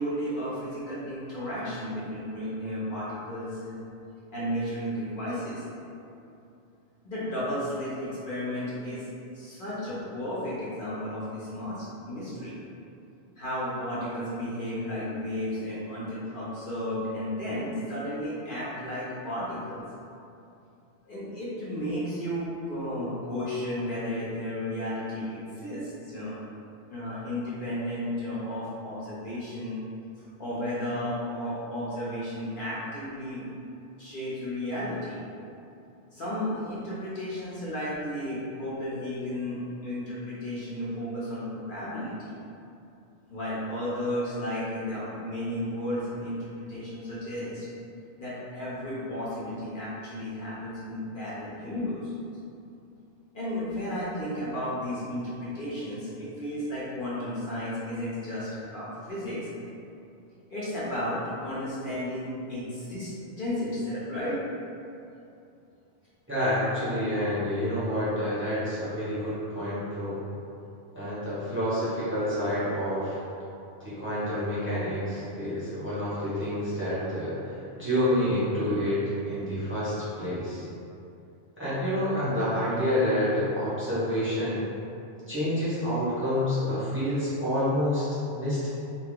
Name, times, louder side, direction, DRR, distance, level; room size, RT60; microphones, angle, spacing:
voice 1, 0.0-3.7 4.3-6.0 7.0-9.1 9.3-12.6 13.4-19.8 21.0-26.3 26.9-29.8 30.2-33.4 34.0-35.2 36.1-42.4 43.3-47.7 48.2-52.1 53.3-59.5 60.5-64.4, left 1 dB, 50° left, -10 dB, 0.8 m, -33 dB
voice 2, 66.3-70.2 70.9-73.2 73.8-80.7 81.6-84.6 85.3-88.7, equal, 15° right, -11 dB, 0.7 m, -28 dB
2.8 x 2.4 x 3.6 m, 2.7 s
omnidirectional pair, 1.2 m